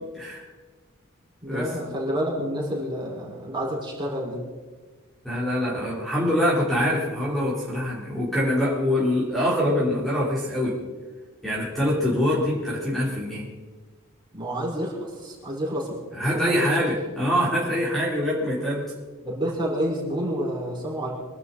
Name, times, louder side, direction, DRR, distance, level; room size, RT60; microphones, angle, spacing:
voice 1, 0.1-0.5 1.5-1.7 5.2-10.8 11.4-13.5 16.1-18.8, left 1 dB, ahead, -7 dB, 4.0 m, -24 dB
voice 2, 1.4-4.4 14.3-15.9 16.3-16.9 19.2-21.1, equal, 20° right, -3 dB, 5.0 m, -29 dB
25.0 x 12.0 x 4.2 m, 1.3 s
head